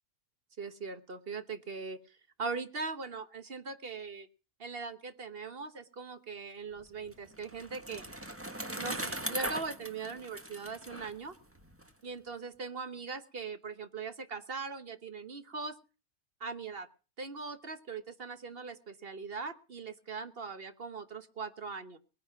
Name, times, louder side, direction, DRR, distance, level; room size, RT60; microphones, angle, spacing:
voice 1, 0.6-4.3 4.6-8.0 8.8-11.3 12.0-15.8 16.4-16.9 17.2-22.0, right 4 dB, 45° right, 11 dB, 1.3 m, -40 dB
Bicycle, 6.8-11.9, right 1 dB, 10° right, 1.5 m, -39 dB
20.0 x 10.5 x 5.8 m, 0.35 s
omnidirectional pair, 1.5 m